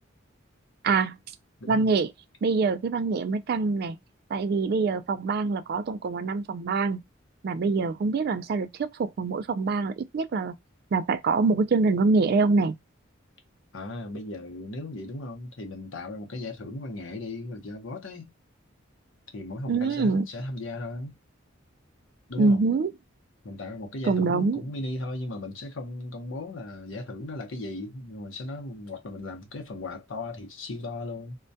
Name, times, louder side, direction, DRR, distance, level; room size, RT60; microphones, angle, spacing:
voice 1, 0.8-1.2 1.7-2.1 2.4-4.0 4.3-7.0 7.4-10.5 10.9-12.8 19.7-20.3 22.4-22.9 24.0-24.6, right 4 dB, 50° right, 0.3 m, -25 dB
voice 2, 13.7-18.3 19.3-21.2 22.3-22.6 23.4-31.4, left 2 dB, 75° left, 0.8 m, -36 dB
2.2 x 2.1 x 2.5 m
head